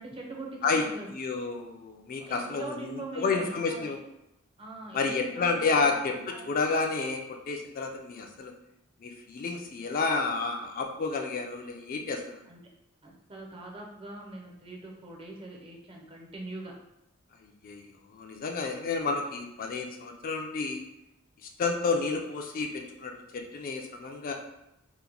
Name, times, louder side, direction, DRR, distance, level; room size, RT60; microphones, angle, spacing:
voice 1, 0.0-1.1 2.2-3.9 4.6-6.5 12.5-12.6 13.0-16.7, right 2 dB, 25° right, 0 dB, 0.5 m, -42 dB
voice 2, 0.6-4.0 4.9-8.5 9.0-12.4 17.4-20.8 21.4-24.3, left 4 dB, 45° left, 3 dB, 0.3 m, -30 dB
2.9 x 2.1 x 3.8 m, 0.87 s
head